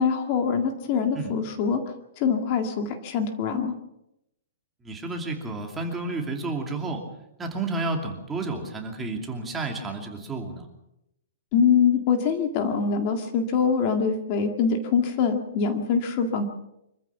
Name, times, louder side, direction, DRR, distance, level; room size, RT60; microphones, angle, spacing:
voice 1, 0.0-1.8 2.2-3.7 11.5-16.4, left 6 dB, 30° left, 6 dB, 1.9 m, -24 dB
voice 2, 4.8-7.0 7.4-10.7, right 3 dB, 10° right, 2 dB, 2.7 m, -31 dB
25.5 x 14.5 x 7.2 m, 0.83 s
hypercardioid pair, 170°, 0 cm